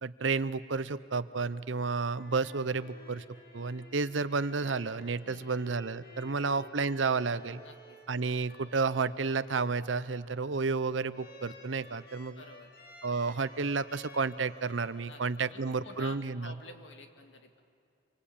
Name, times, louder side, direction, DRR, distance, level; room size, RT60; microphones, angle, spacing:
voice 1, 0.0-3.2 3.5-7.6 8.1-12.4 13.0-16.5, right 4 dB, 90° right, 15 dB, 0.8 m, -31 dB
sound 1, 1.9-16.5, equal, 55° left, 2.5 m, -54 dB
voice 2, 5.2-5.6 6.3-6.7 7.6-8.0 12.4-12.7 15.0-15.2 15.5-17.6, left 2 dB, 80° left, 5 dB, 2.4 m, -50 dB
26.5 x 24.5 x 8.8 m, 2.5 s
head